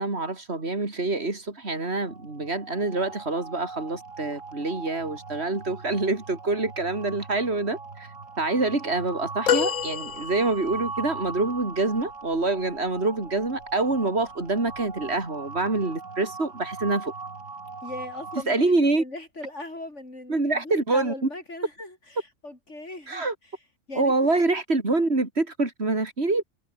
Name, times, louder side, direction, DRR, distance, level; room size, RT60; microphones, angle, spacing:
voice 1, 0.0-8.1 8.4-17.1 18.5-19.0 20.3-21.1 23.1-23.3 24.0-26.4, right 2 dB, 55° right, 4.3 m, -26 dB
sound 1, 1.8-18.4, right 4 dB, 80° right, 3.2 m, -40 dB
sound 2, 9.5-10.9 13.3-13.4 14.8-14.9, left 10 dB, 80° left, 1.3 m, -27 dB
voice 2, 17.8-23.6 23.9-24.3, left 2 dB, 65° left, 5.8 m, -39 dB
omnidirectional pair, 1.3 m